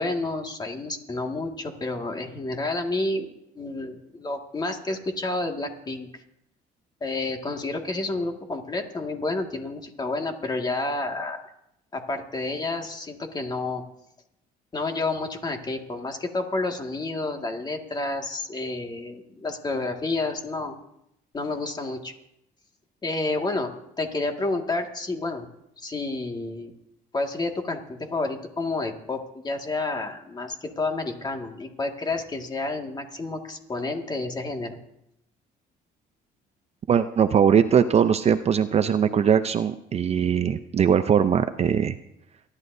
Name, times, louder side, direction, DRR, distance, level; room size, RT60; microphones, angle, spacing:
voice 1, 0.0-3.3 3.5-6.2 7.0-11.5 11.9-13.8 14.7-20.7 21.3-22.1 23.0-25.5 25.8-26.7 27.1-34.8, left 2 dB, 25° left, 3 dB, 2.0 m, -30 dB
voice 2, 36.9-41.9, right 8 dB, 40° right, 10 dB, 0.6 m, -21 dB
29.0 x 11.5 x 2.7 m, 0.78 s
cardioid pair, 110°, 17 cm